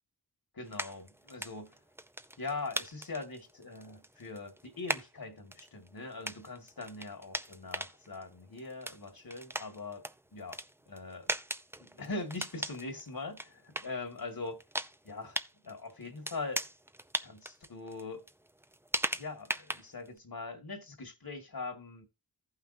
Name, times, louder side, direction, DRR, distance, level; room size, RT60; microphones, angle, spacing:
voice 1, 0.5-1.7 2.4-10.0 10.3-10.6 10.9-11.3 11.8-14.6 15.0-15.4 15.6-16.6 17.2-18.2 19.1-22.1, left 3 dB, 60° left, 2.0 m, -42 dB
sound 1, 0.6-20.2, right 1 dB, 5° right, 0.5 m, -40 dB
15.5 x 5.8 x 2.7 m
wide cardioid pair, 75°, 40 cm